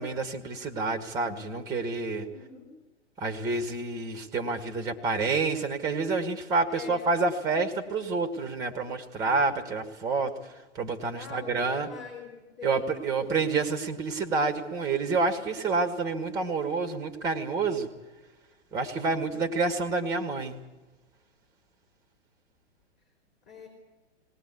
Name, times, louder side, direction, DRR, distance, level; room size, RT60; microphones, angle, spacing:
voice 1, 0.0-2.3 3.2-11.9 12.6-17.9 18.7-20.6, right 3 dB, 10° right, 9 dB, 1.6 m, -28 dB
voice 2, 2.3-2.8 6.7-7.1 11.2-12.3 12.6-13.4 19.1-19.4 23.5-23.7, left 6 dB, 20° left, 0 dB, 3.8 m, -44 dB
20.5 x 18.5 x 8.4 m, 1.1 s
figure-of-eight pair, 115°, 35 cm